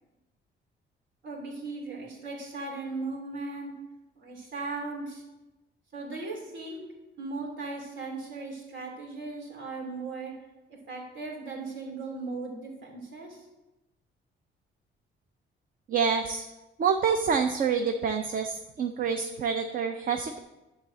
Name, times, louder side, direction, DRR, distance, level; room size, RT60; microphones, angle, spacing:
voice 1, 1.2-3.7 4.2-5.2 5.9-6.8 7.2-10.3 10.9-13.4, right 3 dB, 75° right, -1 dB, 2.9 m, -37 dB
voice 2, 15.9-16.4 16.8-20.4, right 6 dB, 45° right, 6 dB, 0.6 m, -27 dB
11.0 x 4.1 x 7.4 m, 1.0 s
cardioid pair, 160°, 20 cm